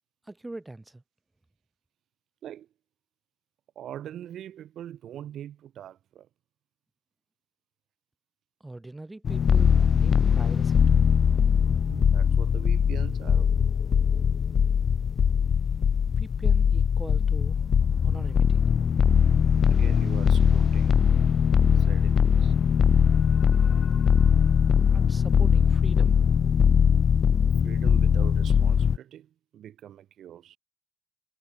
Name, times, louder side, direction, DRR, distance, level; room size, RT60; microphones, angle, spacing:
voice 1, 0.3-1.0 8.6-11.0 16.1-17.6 18.0-18.6 24.9-26.2, right 2 dB, 15° right, 4.9 m, -41 dB
voice 2, 3.8-6.3 11.7-13.6 19.3-21.1 21.8-22.5 27.6-30.6, right 11 dB, 70° right, 2.1 m, -43 dB
sound 1, 9.2-29.0, left 7 dB, 50° left, 0.4 m, -21 dB
cardioid pair, 90°, 0 cm